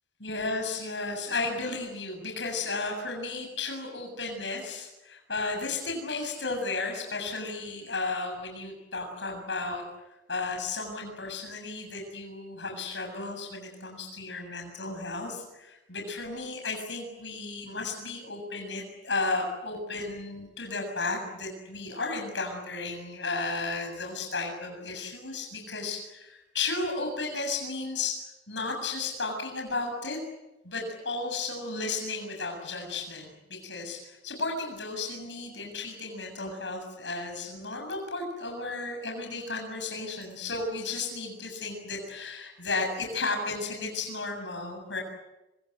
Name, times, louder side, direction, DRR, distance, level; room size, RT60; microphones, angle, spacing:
voice 1, 0.2-9.8 10.3-28.2 28.5-30.2 30.6-45.0, left 3 dB, 90° left, 3 dB, 7.4 m, -34 dB
27.0 x 26.0 x 7.9 m, 0.96 s
head